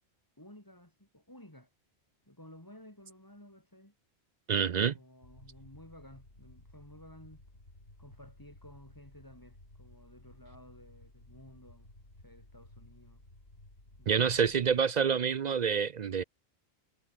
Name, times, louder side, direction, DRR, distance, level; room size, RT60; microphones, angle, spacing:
voice 1, 0.4-1.7 2.3-3.9 4.7-7.4 8.0-11.9 12.2-13.2 14.0-14.6, left 1 dB, 20° left, 4.4 m, -54 dB
voice 2, 4.5-4.9 14.1-16.2, right 7 dB, 50° right, 0.6 m, -27 dB
sound 1, 5.2-14.8, left 1 dB, 90° left, 7.2 m, -56 dB
omnidirectional pair, 1.1 m